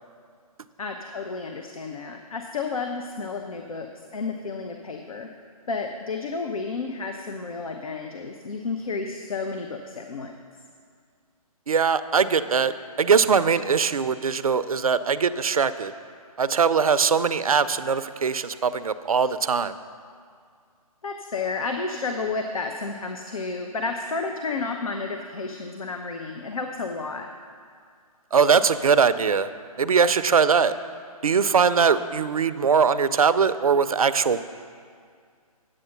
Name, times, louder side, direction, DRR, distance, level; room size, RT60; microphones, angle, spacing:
voice 1, 0.8-5.3 5.7-10.3 21.0-27.3, left 4 dB, 65° left, 4 dB, 0.7 m, -31 dB
voice 2, 11.7-12.7 13.0-15.9 16.4-19.7 28.3-29.5 29.8-30.7 31.2-34.4, right 6 dB, 65° right, 13 dB, 0.5 m, -21 dB
9.1 x 7.7 x 5.9 m, 2.1 s
figure-of-eight pair, 135°, 20 cm